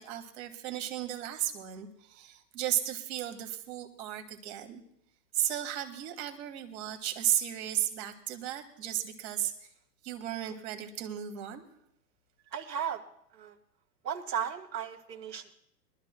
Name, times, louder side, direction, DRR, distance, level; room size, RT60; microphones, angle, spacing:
voice 1, 0.0-4.8 5.3-9.7 10.0-11.6, right 12 dB, 40° right, 7 dB, 1.8 m, -34 dB
voice 2, 12.5-13.0 13.3-13.5 14.0-15.5, right 8 dB, 80° right, 0 dB, 2.3 m, -35 dB
23.5 x 12.5 x 2.2 m, 0.72 s
hypercardioid pair, 140°, 50 cm